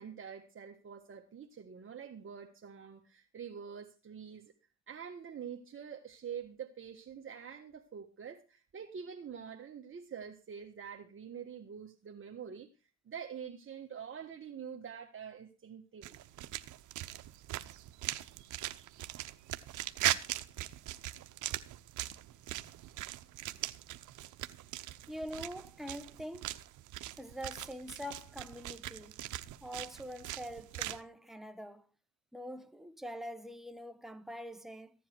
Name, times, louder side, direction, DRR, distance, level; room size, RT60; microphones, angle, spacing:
voice 1, 0.0-4.5 4.9-12.7 13.0-16.2, right 7 dB, 45° right, 1.6 m, -46 dB
sound 1, 16.0-31.0, right 15 dB, 85° right, 0.9 m, -40 dB
voice 2, 25.1-26.5 27.2-29.2 29.6-31.9 32.3-34.9, equal, ahead, 1.2 m, -44 dB
15.0 x 10.5 x 4.5 m
cardioid pair, 90°, 30 cm